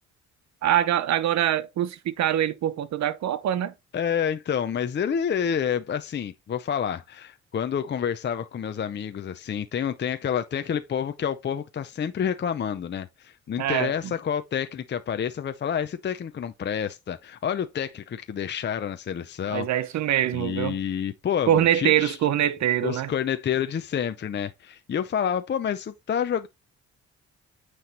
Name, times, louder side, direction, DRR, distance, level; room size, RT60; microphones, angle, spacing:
voice 1, 0.6-3.7 13.6-13.9 19.5-20.8 21.5-23.1, right 11 dB, 65° right, 0.8 m, -24 dB
voice 2, 3.9-19.7 20.3-22.2 22.8-26.5, left 8 dB, 35° left, 0.6 m, -28 dB
9.2 x 3.3 x 4.1 m
cardioid pair, 90°, 30 cm